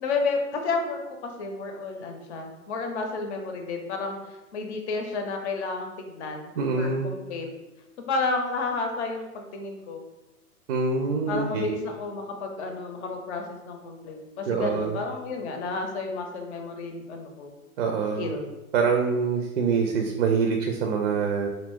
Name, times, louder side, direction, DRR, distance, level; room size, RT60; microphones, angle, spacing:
voice 1, 0.0-4.2 4.5-7.5 8.1-10.0 11.3-17.5 18.2-18.5, left 3 dB, 50° left, 3 dB, 0.7 m, -31 dB
voice 2, 6.6-7.1 10.7-11.7 14.5-15.0 17.8-18.3 18.7-21.5, right 5 dB, 45° right, 2 dB, 0.4 m, -25 dB
2.7 x 2.5 x 3.5 m, 1.0 s
hypercardioid pair, 125°, 45 cm